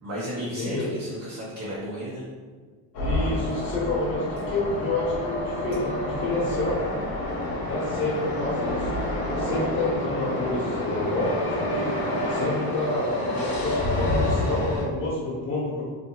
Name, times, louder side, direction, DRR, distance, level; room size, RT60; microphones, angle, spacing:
voice 1, 0.0-2.2, equal, 40° right, -8 dB, 0.9 m, -33 dB
sound 1, 2.9-14.8, left 1 dB, 60° left, 0.8 m, -28 dB
voice 2, 3.0-6.8 7.6-8.9 9.4-12.0 12.3-15.8, left 2 dB, 35° left, -6 dB, 1.0 m, -29 dB
2.7 x 2.5 x 2.9 m, 1.5 s
cardioid pair, 95°, 40 cm